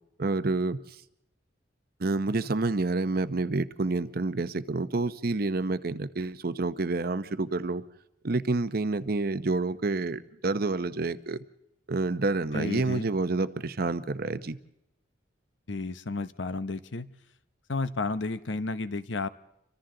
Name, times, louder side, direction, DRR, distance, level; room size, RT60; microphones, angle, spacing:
voice 1, 0.2-0.8 2.0-7.8 8.2-11.4 11.9-14.6, right 3 dB, 55° right, 13 dB, 0.8 m, -28 dB
voice 2, 12.5-13.1 15.7-17.1 17.7-19.3, left 3 dB, 85° left, 13 dB, 0.9 m, -32 dB
29.5 x 25.0 x 3.9 m, 0.86 s
head